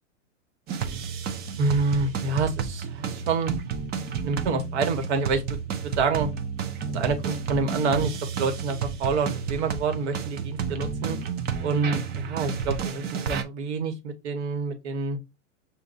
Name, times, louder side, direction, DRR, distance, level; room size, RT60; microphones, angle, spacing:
sound 1, 0.7-13.4, right 6 dB, 25° right, 0.6 m, -31 dB
voice 1, 1.6-3.5 4.2-5.6 6.0-6.3 6.9-8.1 8.4-11.2 11.6-15.2, right 4 dB, 60° right, 1.4 m, -27 dB
6.8 x 2.6 x 2.6 m
hypercardioid pair, 120°, 38 cm